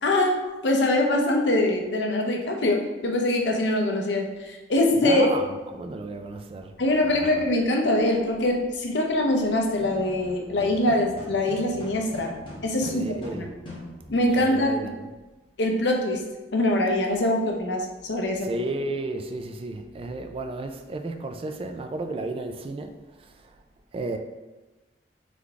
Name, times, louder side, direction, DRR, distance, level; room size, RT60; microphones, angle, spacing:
voice 1, 0.0-5.3 6.8-12.3 12.6-13.4 14.1-14.9 15.6-16.2 16.5-18.6, left 1 dB, 80° left, 0.7 m, -23 dB
voice 2, 5.0-6.7 7.1-7.4 12.9-13.5 14.4-15.0 18.4-22.9 23.2-23.3 23.9-24.2, right 2 dB, 30° right, 0.3 m, -33 dB
sound 1, 9.7-14.4, left 1 dB, 30° left, 1.1 m, -42 dB
3.9 x 3.4 x 3.5 m
head